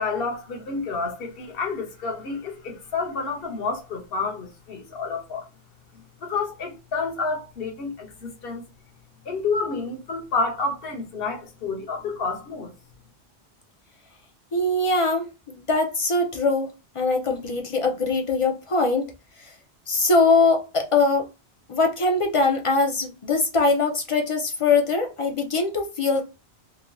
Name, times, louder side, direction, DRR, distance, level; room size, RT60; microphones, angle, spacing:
voice 1, 0.0-5.5 5.9-8.6 9.2-12.7, left 4 dB, 65° left, 0.9 m, -29 dB
voice 2, 14.5-16.7 16.9-19.1 19.4-19.5 19.9-21.3 21.7-26.2, left 3 dB, 45° left, 0.4 m, -22 dB
3.1 x 2.5 x 2.2 m
omnidirectional pair, 1.1 m